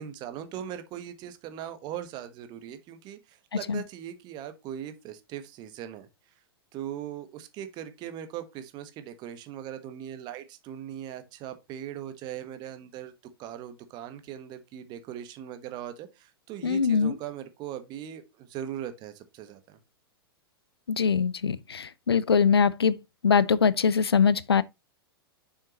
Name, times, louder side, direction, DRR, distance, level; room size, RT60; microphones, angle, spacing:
voice 1, 0.0-6.1 6.7-13.1 13.4-19.8, right 10 dB, 35° right, 1.3 m, -39 dB
voice 2, 16.6-17.1 20.9-22.9 23.2-24.6, left 6 dB, 80° left, 0.5 m, -22 dB
7.0 x 6.5 x 3.0 m
figure-of-eight pair, 100°, 13 cm